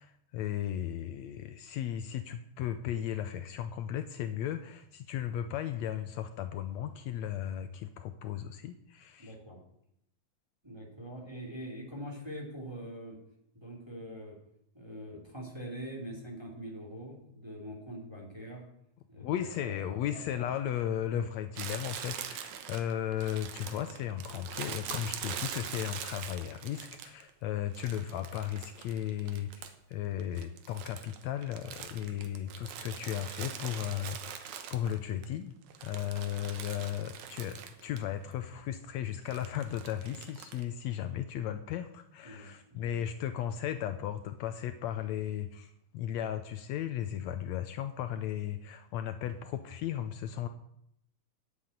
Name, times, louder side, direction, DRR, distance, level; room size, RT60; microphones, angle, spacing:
voice 1, 0.0-9.4 19.2-35.5 35.8-50.5, left 10 dB, 75° left, 9 dB, 1.8 m, -36 dB
voice 2, 9.2-9.6 10.6-13.2 13.5-14.4 14.7-18.6 19.1-20.5 42.2-42.9, equal, 10° right, -1 dB, 2.5 m, -44 dB
Crumpling crinkling, 21.6-27.3 27.8-29.9 30.2-35.3 35.6-38.1 38.3-38.4 39.3-40.6, right 8 dB, 75° right, 2.4 m, -43 dB
9.6 x 8.4 x 8.9 m, 0.77 s
omnidirectional pair, 3.4 m